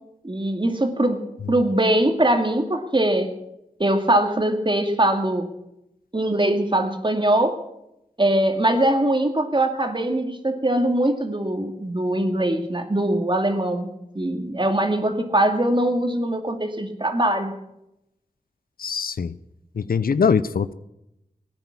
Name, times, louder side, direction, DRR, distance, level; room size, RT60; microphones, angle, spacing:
voice 1, 0.2-1.2 1.5-3.3 3.8-5.5 6.1-7.6 8.2-13.9 14.1-17.5, right 1 dB, 35° right, 5 dB, 2.3 m, -22 dB
voice 2, 18.8-19.4 19.8-20.7, left 6 dB, 85° left, 15 dB, 0.6 m, -22 dB
17.5 x 9.7 x 7.2 m, 0.86 s
wide cardioid pair, 55°, 15 cm